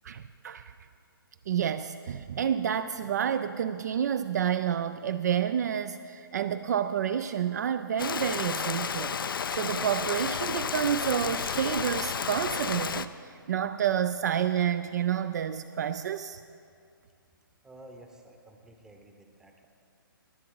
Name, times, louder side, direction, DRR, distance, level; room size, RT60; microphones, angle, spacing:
voice 1, 0.0-0.7 1.5-9.2 9.5-16.4, right 9 dB, 45° right, 11 dB, 0.4 m, -29 dB
Rain, 8.0-13.1, left 7 dB, 65° left, 0.5 m, -32 dB
voice 2, 17.6-19.7, right 1 dB, 5° right, 4 dB, 0.8 m, -52 dB
21.0 x 7.4 x 3.9 m, 2.4 s
figure-of-eight pair, 140°, 12 cm